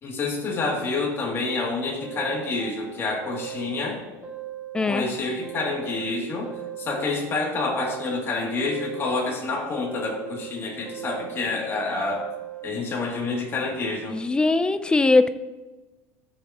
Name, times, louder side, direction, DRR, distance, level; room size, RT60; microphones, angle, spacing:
voice 1, 0.0-4.0 4.9-6.5 6.8-12.3 12.6-14.2, left 3 dB, 35° left, -1 dB, 2.6 m, -28 dB
sound 1, 2.0-3.9 4.2-6.1 6.4-8.3 8.6-10.5 10.9-12.7, right 10 dB, 25° right, 2.2 m, -39 dB
voice 2, 14.1-15.3, left 3 dB, 10° left, 13 dB, 0.5 m, -20 dB
14.5 x 7.0 x 3.0 m, 1.2 s
supercardioid pair, 120°, 7 cm